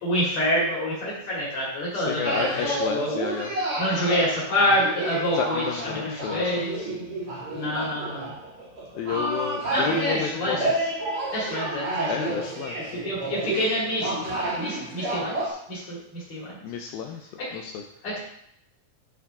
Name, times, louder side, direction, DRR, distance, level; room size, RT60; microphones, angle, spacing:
voice 1, 0.0-3.1 3.8-5.6 5.9-6.8 7.5-8.3 9.7-10.6 11.3-12.4 13.0-16.6 17.4-17.5 18.0-18.2, left 1 dB, 45° left, -6 dB, 3.2 m, -27 dB
voice 2, 1.9-3.5 5.3-6.9 9.0-10.7 12.1-13.0 16.6-17.8, left 7 dB, 90° left, 3 dB, 2.0 m, -31 dB
sound 1, 2.2-15.5, right 1 dB, 45° right, 2.2 m, -30 dB
13.0 x 4.6 x 3.7 m, 0.72 s
omnidirectional pair, 4.8 m